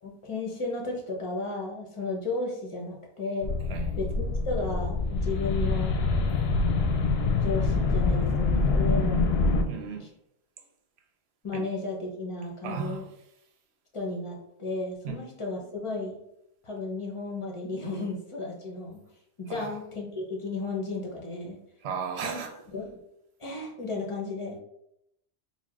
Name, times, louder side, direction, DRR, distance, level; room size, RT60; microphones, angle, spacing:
voice 1, 0.0-3.5 4.0-6.0 7.2-9.3 10.0-10.1 11.4-13.1 13.9-16.2 16.6-19.0 19.4-21.6 22.2-22.4 22.7-22.9 23.4-24.6, left 3 dB, 35° left, 0.7 m, -34 dB
sound 1, 3.4-9.6, left 3 dB, 70° left, 0.8 m, -25 dB
voice 2, 9.7-10.1 11.5-11.6 12.6-13.0 15.0-15.2 19.5-19.7 21.8-22.5, right 6 dB, 75° right, 0.9 m, -34 dB
6.0 x 2.1 x 2.4 m
omnidirectional pair, 1.1 m